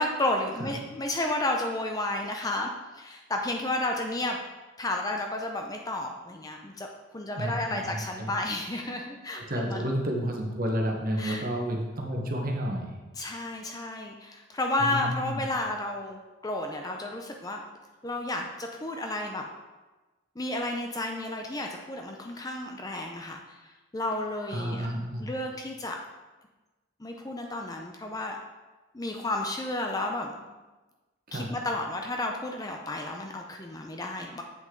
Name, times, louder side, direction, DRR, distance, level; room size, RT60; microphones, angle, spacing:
voice 1, 0.0-4.4 4.8-9.9 11.2-11.4 13.2-17.6 18.0-19.5 20.4-24.9 25.2-26.0 27.0-28.4 28.9-30.3 31.3-34.4, left 2 dB, 15° left, 2 dB, 0.5 m, -32 dB
voice 2, 7.4-8.3 9.4-13.0 14.8-15.4 24.5-25.3 31.3-31.5, equal, 45° right, 0 dB, 1.2 m, -31 dB
7.7 x 6.0 x 3.8 m, 1.2 s
head